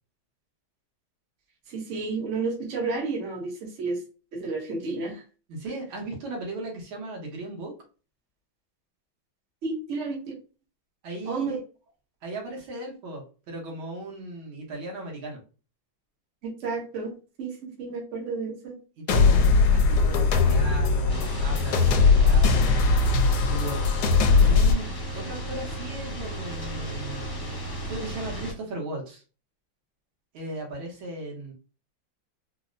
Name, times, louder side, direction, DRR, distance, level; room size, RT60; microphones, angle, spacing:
voice 1, 1.7-4.0 4.3-5.2 9.6-10.4 11.3-11.6 16.4-18.8, right 4 dB, 50° right, 0 dB, 1.0 m, -31 dB
voice 2, 5.5-7.7 11.0-11.6 12.2-15.4 19.0-23.0 23.5-23.8 24.4-27.3 27.8-29.2 30.3-31.5, right 2 dB, 85° right, 0 dB, 1.8 m, -37 dB
sound 1, 19.1-24.7, left 4 dB, 80° left, 1.3 m, -20 dB
sound 2, 21.1-28.5, right 1 dB, 25° left, 0.5 m, -34 dB
4.0 x 2.0 x 2.5 m, 0.35 s
omnidirectional pair, 2.1 m